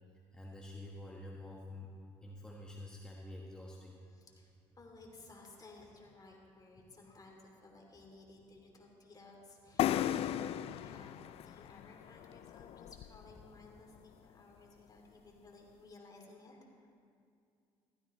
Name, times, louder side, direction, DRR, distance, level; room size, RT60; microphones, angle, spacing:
voice 1, 0.3-1.9 2.2-4.0, left 1 dB, 5° left, -3 dB, 1.5 m, -48 dB
voice 2, 4.1-16.9, left 2 dB, 35° left, 0 dB, 3.1 m, -57 dB
sound 1, 9.8-13.4, left 12 dB, 60° left, 0.4 m, -36 dB
15.0 x 13.5 x 3.3 m, 2.4 s
hypercardioid pair, 60°, 12 cm